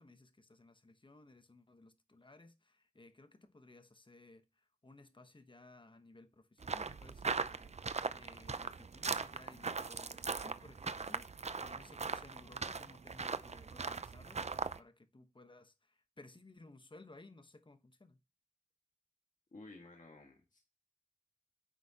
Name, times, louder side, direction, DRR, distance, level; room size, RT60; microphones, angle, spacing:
voice 1, 0.0-4.4 4.8-11.3 11.6-18.2, left 2 dB, 40° left, 1.1 m, -59 dB
sound 1, 6.6-14.8, right 4 dB, 55° right, 0.5 m, -40 dB
voice 2, 19.5-20.6, left 2 dB, 80° left, 1.7 m, -54 dB
9.5 x 6.1 x 2.9 m
wide cardioid pair, 65°, 13 cm